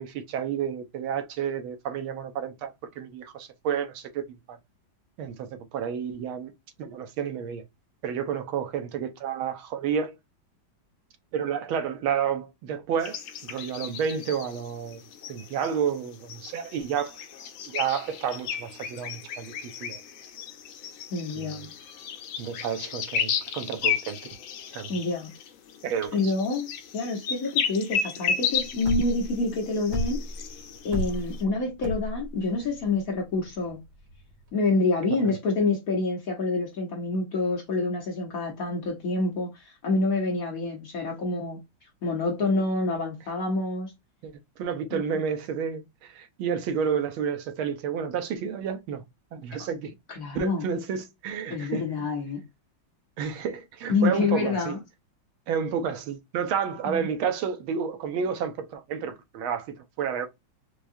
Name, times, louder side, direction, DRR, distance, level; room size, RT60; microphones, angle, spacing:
voice 1, 0.0-4.6 5.2-6.5 6.8-7.6 8.0-10.1 11.3-15.0 15.3-17.2 17.7-20.0 21.4-21.7 22.4-24.2 24.7-24.9 25.8-26.3 35.2-35.3 44.2-49.0 49.3-49.9 50.3-51.8 53.2-54.8 55.5-60.3, right 7 dB, 80° right, 1.6 m, -30 dB
sound 1, 13.0-31.4, left 7 dB, 75° left, 1.5 m, -34 dB
voice 2, 21.1-21.7 24.9-25.3 26.1-30.2 30.8-33.8 34.5-41.6 42.0-43.9 44.9-45.2 50.2-50.6 51.5-52.4 53.9-54.8 56.8-57.1, left 3 dB, 50° left, 1.3 m, -27 dB
sound 2, 28.6-34.5, equal, 50° right, 1.2 m, -32 dB
4.6 x 2.4 x 2.6 m
omnidirectional pair, 2.2 m